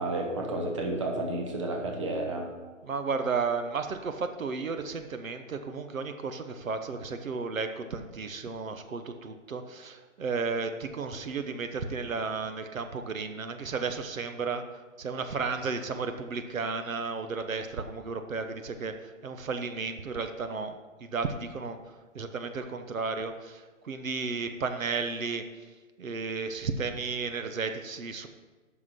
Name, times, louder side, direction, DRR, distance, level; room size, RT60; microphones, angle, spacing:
voice 1, 0.0-2.5, right 2 dB, 25° right, 1 dB, 0.8 m, -31 dB
voice 2, 2.8-14.6 15.0-21.8 22.1-25.4 26.0-28.3, right 4 dB, 80° right, 8 dB, 1.0 m, -33 dB
7.5 x 5.9 x 6.2 m, 1.3 s
hypercardioid pair, 160°, 40 cm